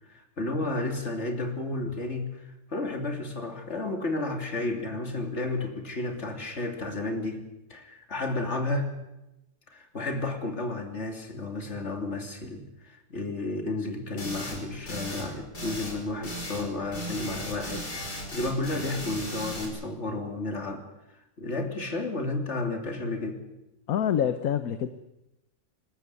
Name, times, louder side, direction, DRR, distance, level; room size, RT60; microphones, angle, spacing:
voice 1, 0.1-7.4 7.7-8.9 9.7-20.8 21.4-23.4, left 2 dB, 45° left, 5 dB, 3.2 m, -32 dB
sound 1, 14.2-14.6 14.9-15.3 15.5-16.7 16.9-19.7, left 1 dB, 85° left, 5.2 m, -36 dB
voice 2, 23.9-24.9, left 9 dB, 65° left, 11 dB, 1.4 m, -26 dB
25.5 x 13.5 x 9.6 m, 0.93 s
omnidirectional pair, 1.7 m